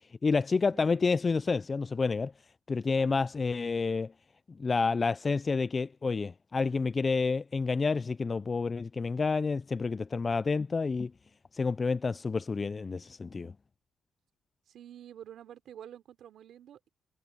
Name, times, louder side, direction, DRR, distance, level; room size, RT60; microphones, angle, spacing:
voice 1, 0.2-2.3 2.7-4.1 4.6-11.1 11.5-13.5, left 4 dB, 30° left, 0.3 m, -29 dB
voice 2, 0.7-1.1 3.0-3.2 14.7-16.9, right 10 dB, 70° right, 3.3 m, -49 dB
cardioid pair, 90°, 0 cm